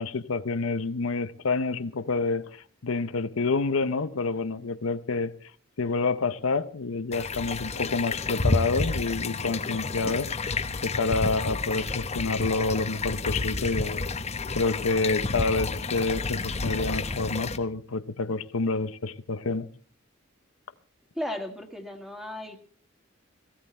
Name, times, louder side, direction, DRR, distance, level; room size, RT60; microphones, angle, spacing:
voice 1, 0.0-5.3 5.8-14.2 14.5-19.7, left 3 dB, 75° left, 0.7 m, -28 dB
sound 1, 7.1-17.6, left 3 dB, 30° left, 0.9 m, -30 dB
voice 2, 21.2-22.6, left 1 dB, ahead, 1.9 m, -35 dB
17.5 x 16.0 x 4.3 m
head